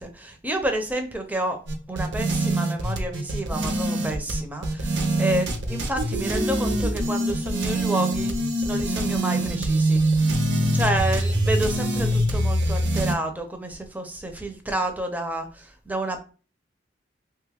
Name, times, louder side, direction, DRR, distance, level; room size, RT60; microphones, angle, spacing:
voice 1, 0.0-1.6 1.9-8.4 8.6-16.2, right 1 dB, 10° right, 4 dB, 0.4 m, -30 dB
sound 1, 1.7-13.1, right 1 dB, 65° right, 0.6 m, -24 dB
2.9 x 2.3 x 3.3 m, 0.37 s
head